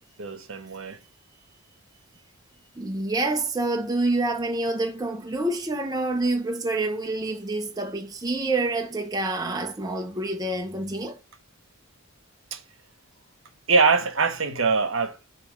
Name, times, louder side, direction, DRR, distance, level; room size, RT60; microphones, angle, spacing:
voice 1, 0.2-1.0 12.5-12.6 13.7-15.2, right 4 dB, 65° right, 0.9 m, -23 dB
voice 2, 2.8-11.2, right 2 dB, 15° right, 0.5 m, -27 dB
6.8 x 2.9 x 5.2 m
head